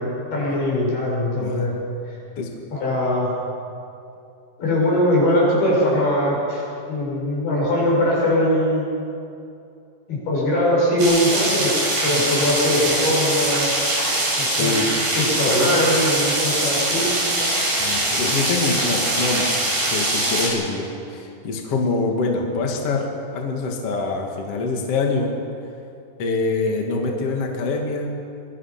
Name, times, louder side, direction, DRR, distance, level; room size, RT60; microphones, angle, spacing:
voice 1, 0.0-1.8 2.7-3.3 4.6-8.9 10.1-11.7 12.0-13.8 14.4-14.7 15.2-17.5, left 1 dB, 80° left, -5 dB, 9.2 m, -21 dB
sound 1, 11.0-20.5, right 1 dB, 65° right, 8.7 m, -22 dB
voice 2, 14.4-15.0 15.6-15.7 17.8-23.1 23.3-25.3 26.2-28.2, left 3 dB, 45° left, 1 dB, 2.7 m, -25 dB
24.5 x 22.5 x 6.0 m, 2.6 s
omnidirectional pair, 4.5 m